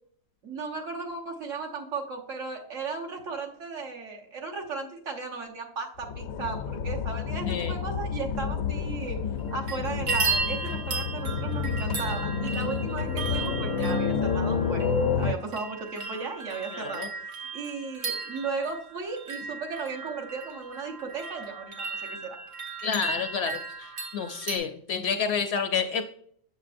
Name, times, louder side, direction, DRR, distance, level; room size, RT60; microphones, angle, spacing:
voice 1, 0.4-9.2 9.5-22.4, right 4 dB, 65° right, 0 dB, 1.4 m, -36 dB
sound 1, 6.0-15.3, left 6 dB, 90° left, 1.0 m, -29 dB
voice 2, 7.5-7.8 16.7-17.1 22.8-26.0, left 6 dB, 65° left, 7 dB, 0.7 m, -29 dB
sound 2, 9.4-9.8 10.1-24.6, right 4 dB, 90° right, 1.4 m, -35 dB
7.2 x 6.8 x 2.5 m, 0.64 s
omnidirectional pair, 1.4 m